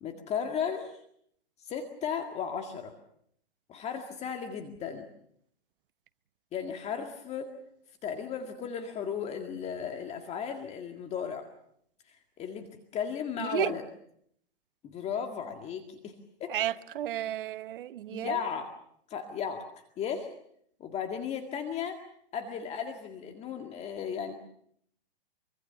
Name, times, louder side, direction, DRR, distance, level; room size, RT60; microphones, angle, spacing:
voice 1, 0.0-1.0 1.6-2.9 3.7-5.1 6.5-7.5 8.0-11.5 12.1-13.8 14.8-16.6 18.1-18.7 19.1-19.7 20.0-20.3 20.8-22.0 22.3-24.3, left 7 dB, 20° left, 1.9 m, -35 dB
voice 2, 13.4-13.7 16.5-18.4, right 12 dB, 55° right, 1.1 m, -32 dB
25.0 x 25.0 x 6.9 m
hypercardioid pair, 140°, 32 cm